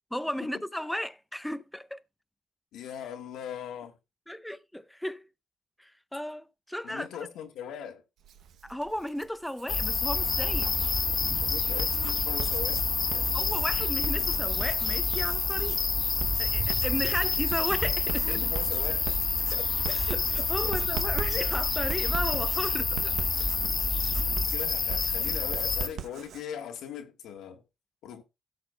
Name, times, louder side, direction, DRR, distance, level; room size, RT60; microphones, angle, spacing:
voice 1, 0.1-2.0 4.3-5.3 5.8-7.1 8.6-10.7 13.3-15.8 16.4-18.4 19.5-23.1, left 1 dB, 5° left, 0.6 m, -34 dB
voice 2, 2.7-4.0 6.8-8.0 11.4-13.3 18.2-19.5 20.6-20.8 24.2-27.6 28.0-28.2, left 9 dB, 85° left, 1.4 m, -40 dB
Writing, 8.2-9.8 10.4-26.4, right 9 dB, 70° right, 0.7 m, -42 dB
sound 1, 9.7-25.9, left 5 dB, 40° left, 1.3 m, -28 dB
sound 2, 10.1-24.5, right 3 dB, 40° right, 3.8 m, -39 dB
17.0 x 6.9 x 2.2 m
cardioid pair, 90°, 0 cm